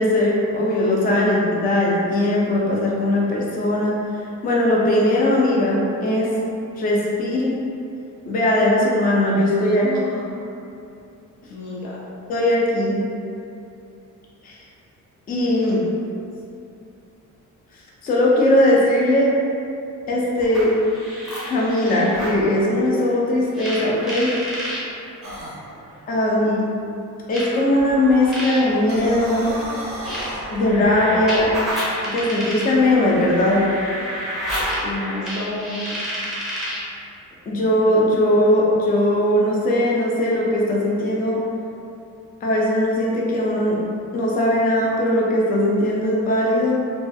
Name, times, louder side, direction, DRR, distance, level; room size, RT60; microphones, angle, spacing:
voice 1, 0.0-6.3 6.8-7.6 8.3-9.9 12.3-13.0 14.4-14.6 15.3-15.8 18.0-19.3 20.1-20.7 21.5-24.3 26.1-26.5 27.3-29.5 30.5-31.5 32.1-33.6 37.5-41.4 42.4-43.8 44.1-46.8, left 1 dB, 30° left, -4 dB, 0.4 m, -19 dB
voice 2, 9.8-10.6 11.5-12.0 15.6-15.8 26.4-26.7 34.8-36.0, left 2 dB, 85° left, -6 dB, 0.7 m, -31 dB
sound 1, 20.4-22.4 23.5-24.8 25.9-26.0 27.3-36.9, equal, ahead, 0.7 m, -30 dB
sound 2, 25.2-25.6 28.8-30.4, right 1 dB, 45° right, 0.5 m, -33 dB
2.3 x 2.3 x 2.5 m, 2.6 s
cardioid pair, 130°, 32 cm